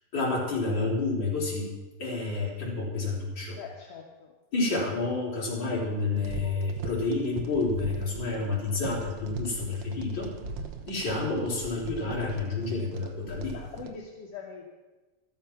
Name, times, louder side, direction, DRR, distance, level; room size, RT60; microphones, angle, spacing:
voice 1, 0.1-1.7 2.0-3.6 4.5-10.3 10.8-13.6, left 3 dB, 30° left, -4 dB, 4.6 m, -29 dB
voice 2, 3.5-4.3 13.5-14.7, left 6 dB, 55° left, -1 dB, 2.0 m, -42 dB
sound 1, 6.1-13.9, right 4 dB, 65° right, 1.6 m, -40 dB
14.5 x 13.5 x 5.9 m, 1.2 s
omnidirectional pair, 4.0 m